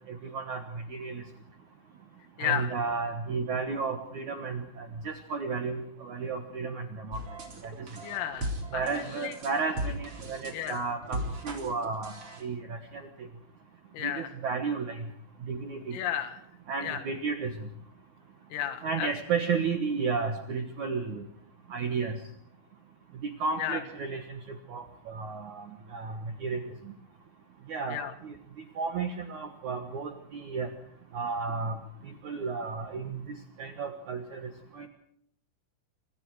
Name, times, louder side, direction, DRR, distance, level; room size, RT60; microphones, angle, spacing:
voice 1, 0.1-0.6 0.9-1.2 2.4-7.2 7.6-7.7 8.7-12.1 12.4-13.1 14.0-15.0 15.5-16.0 16.7-17.5 18.8-21.2 21.7-22.2 23.4-25.6 25.9-26.7 27.7-28.0 28.2-28.3 28.8-30.7 31.1-31.8 32.2-34.9, right 5 dB, 80° right, 5 dB, 1.7 m, -33 dB
voice 2, 2.4-2.7 8.0-9.4 10.5-10.8 13.9-14.3 15.9-16.4 16.8-17.0 18.5-19.1 23.6-23.8 27.9-28.1, left 10 dB, 85° left, 8 dB, 4.5 m, -33 dB
sound 1, 7.1-12.4, right 1 dB, 30° right, 4.1 m, -37 dB
27.0 x 25.5 x 4.8 m, 0.71 s
omnidirectional pair, 5.8 m